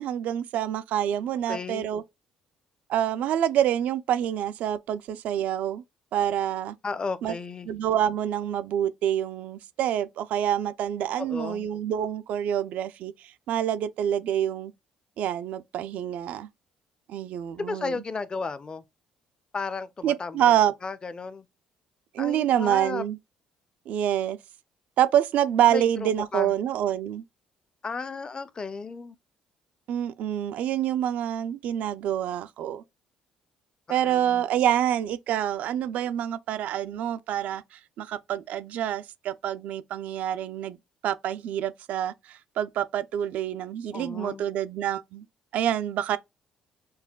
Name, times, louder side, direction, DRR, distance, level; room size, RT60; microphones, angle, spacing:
voice 1, 0.0-2.0 2.9-5.8 6.1-6.8 7.2-7.3 7.6-14.7 15.2-16.5 17.1-18.0 20.0-20.7 22.1-23.2 23.9-24.4 25.0-27.2 29.9-32.8 33.9-40.8 41.0-45.2 45.5-46.2, right 10 dB, 70° right, 0.4 m, -27 dB
voice 2, 1.5-1.9 6.8-7.7 11.2-11.7 17.7-18.8 19.5-20.6 20.8-21.5 22.2-23.0 25.7-26.5 27.8-29.2 33.9-34.5 43.9-44.4, left 4 dB, 35° left, 0.5 m, -34 dB
5.4 x 2.2 x 2.3 m
supercardioid pair, 60°, 3 cm